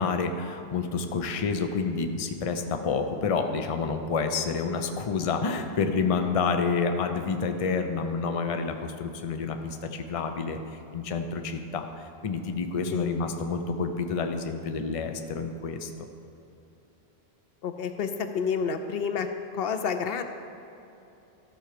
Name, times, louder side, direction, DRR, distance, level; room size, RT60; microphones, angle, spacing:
voice 1, 0.0-15.9, left 5 dB, 40° left, 6 dB, 0.6 m, -29 dB
voice 2, 17.6-19.3 19.5-20.2, left 6 dB, 70° left, 8 dB, 0.8 m, -29 dB
13.5 x 4.6 x 6.6 m, 2.9 s
omnidirectional pair, 1.0 m